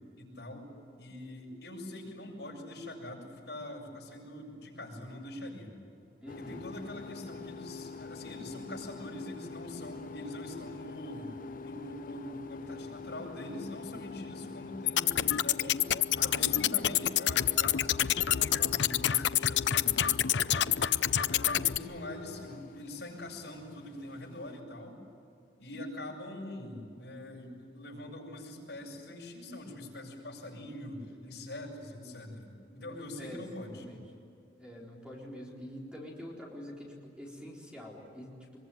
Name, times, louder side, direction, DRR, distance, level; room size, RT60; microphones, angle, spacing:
voice 1, 0.2-0.7 1.0-5.8 6.4-11.3 11.6-19.9 21.0-25.0 25.6-33.9, left 1 dB, 70° left, -1 dB, 7.1 m, -43 dB
voice 2, 6.2-6.6 19.5-21.0 33.2-33.4 33.7-34.0 34.6-38.7, equal, 5° right, -3 dB, 4.4 m, -46 dB
sound 1, 6.3-24.6, left 4 dB, 50° left, 0.7 m, -45 dB
sound 2, 14.9-21.8, left 11 dB, 90° left, 0.6 m, -27 dB
24.5 x 23.0 x 9.6 m, 2.5 s
head